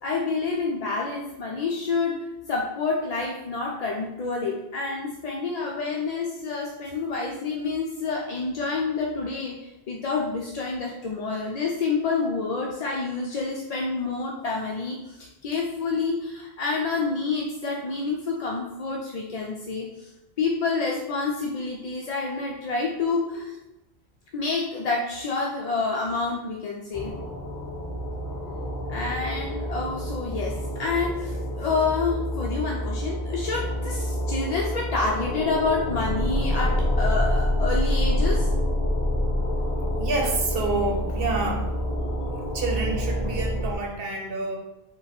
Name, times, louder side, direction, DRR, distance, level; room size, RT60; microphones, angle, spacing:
voice 1, 0.0-2.1 2.5-20.1 20.4-23.6 24.3-27.1 28.9-38.5, left 4 dB, 55° left, -2 dB, 0.4 m, -28 dB
sound 1, 26.9-43.8, equal, 15° left, 0.9 m, -27 dB
voice 2, 40.0-41.7 42.3-44.6, right 3 dB, 65° right, 1 dB, 1.0 m, -28 dB
4.0 x 2.3 x 4.1 m, 0.93 s
omnidirectional pair, 1.1 m